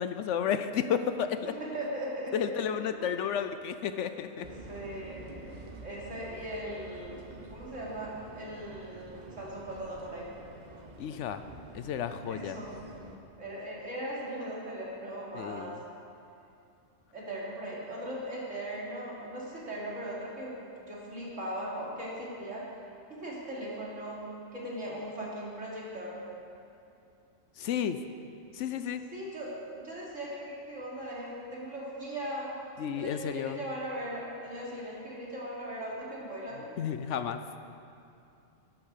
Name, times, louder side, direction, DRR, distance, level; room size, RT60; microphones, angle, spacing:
voice 1, 0.0-1.5 2.3-4.5 11.0-11.4 11.7-12.6 15.3-15.8 27.6-28.0 28.5-29.0 32.8-33.6 36.8-37.4, left 8 dB, 75° left, 10 dB, 0.9 m, -32 dB
voice 2, 1.4-2.7 3.0-3.4 4.7-5.5 5.8-7.2 7.5-10.3 12.3-12.9 13.4-15.7 17.1-22.7 23.1-24.2 24.5-26.2 29.1-32.6 33.0-36.7, right 1 dB, 80° right, -6 dB, 3.4 m, -39 dB
sound 1, 4.4-13.2, right 2 dB, 40° right, 1.1 m, -48 dB
12.0 x 11.0 x 6.6 m, 2.6 s
omnidirectional pair, 1.3 m